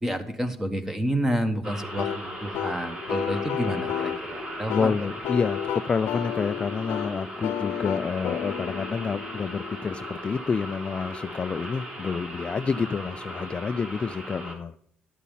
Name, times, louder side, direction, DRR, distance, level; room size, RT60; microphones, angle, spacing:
voice 1, 0.0-4.9, right 1 dB, 10° right, 8 dB, 1.5 m, -29 dB
sound 1, 1.6-14.5, equal, 25° right, 3.4 m, -37 dB
sound 2, 2.0-10.6, left 10 dB, 90° left, 0.8 m, -33 dB
voice 2, 4.7-14.7, left 5 dB, 30° left, 12 dB, 0.3 m, -28 dB
12.0 x 8.3 x 5.6 m, 0.63 s
cardioid pair, 125°, 4 cm